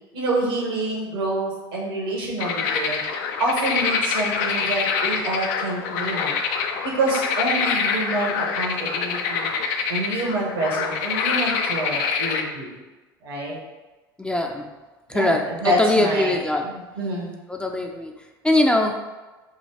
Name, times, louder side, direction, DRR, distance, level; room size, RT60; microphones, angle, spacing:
voice 1, 0.1-3.0 3.4-6.3 6.8-9.5 9.9-12.7 13.2-13.6 15.1-16.3 16.6-17.4, right 1 dB, 75° right, -3 dB, 1.4 m, -27 dB
sound 1, 2.4-12.4, left 5 dB, 65° left, 0.5 m, -25 dB
voice 2, 14.2-14.7 15.1-16.7 17.5-18.1 18.4-18.9, left 1 dB, 10° left, 2 dB, 0.4 m, -21 dB
5.4 x 2.3 x 3.4 m, 1.2 s
hypercardioid pair, 75°, 12 cm